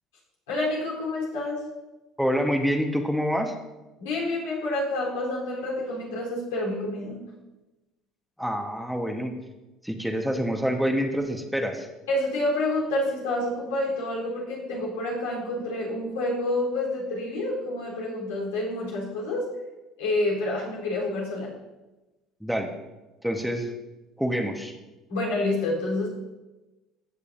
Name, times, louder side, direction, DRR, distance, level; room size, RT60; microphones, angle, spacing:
voice 1, 0.5-1.6 4.0-7.2 12.1-19.4 20.0-21.5 25.1-26.1, left 2 dB, 90° left, -4 dB, 3.6 m, -28 dB
voice 2, 2.2-3.5 8.4-9.4 9.8-11.9 22.4-22.7 23.2-23.7 24.2-24.7, equal, ahead, 3 dB, 1.1 m, -26 dB
15.5 x 6.8 x 2.6 m, 1.1 s
hypercardioid pair, 75°, 0 cm